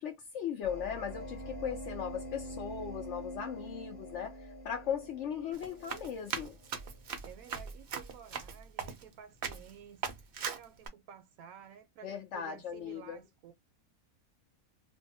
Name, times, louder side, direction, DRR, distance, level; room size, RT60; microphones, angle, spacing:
voice 1, 0.0-4.4 4.6-6.6 12.0-13.2, left 8 dB, 65° left, 0.8 m, -38 dB
sound 1, 0.6-7.1, equal, 35° left, 1.0 m, -45 dB
Run, 5.5-9.1 9.4-9.7 10.0-10.9, right 6 dB, 55° right, 0.6 m, -39 dB
voice 2, 7.2-10.1 10.4-13.5, right 9 dB, 75° right, 1.0 m, -52 dB
2.6 x 2.1 x 2.6 m
omnidirectional pair, 1.5 m